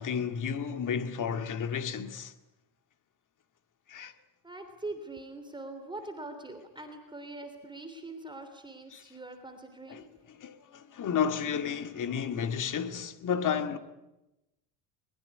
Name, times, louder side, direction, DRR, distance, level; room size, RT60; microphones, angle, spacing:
voice 1, 0.0-2.3 3.9-4.1 8.9-9.0 9.9-10.0 10.4-13.8, left 7 dB, 40° left, 2.1 m, -32 dB
voice 2, 4.4-10.1, right 2 dB, 10° right, 3.2 m, -43 dB
23.0 x 21.5 x 9.7 m
cardioid pair, 130°, 48 cm